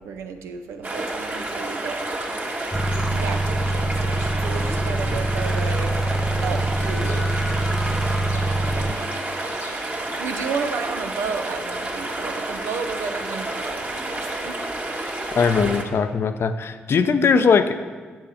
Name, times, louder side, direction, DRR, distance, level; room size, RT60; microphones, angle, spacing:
voice 1, 0.0-2.0 2.4-2.5 3.1-6.0 6.4-7.3 8.3-9.1 10.2-14.6, right 5 dB, 75° right, 7 dB, 0.6 m, -33 dB
sound 1, 0.8-15.8, right 2 dB, 40° right, 1.8 m, -30 dB
sound 2, 2.7-10.1, left 3 dB, 75° left, 1.1 m, -45 dB
sound 3, 2.7-8.9, right 2 dB, 5° right, 0.5 m, -24 dB
voice 2, 15.4-17.8, left 5 dB, 60° left, 9 dB, 0.6 m, -20 dB
9.0 x 6.7 x 4.9 m, 1.5 s
hypercardioid pair, 45°, 5 cm